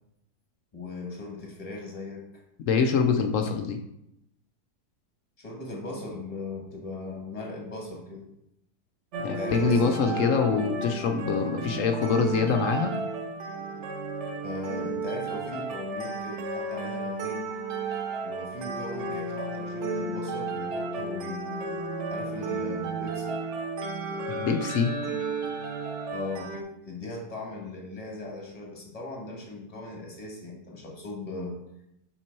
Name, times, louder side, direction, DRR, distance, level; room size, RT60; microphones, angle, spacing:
voice 1, 0.7-2.4 5.4-8.3 9.3-10.3 14.4-17.5 18.2-21.7 22.1-23.4 26.1-26.5 26.8-31.6, left 2 dB, 25° left, -1 dB, 1.4 m, -38 dB
voice 2, 2.7-3.8 9.2-12.9 24.3-25.0, left 5 dB, 65° left, 5 dB, 0.8 m, -25 dB
sound 1, 9.1-26.6, right 3 dB, 50° right, 1.1 m, -33 dB
6.0 x 4.4 x 4.5 m, 0.83 s
omnidirectional pair, 1.7 m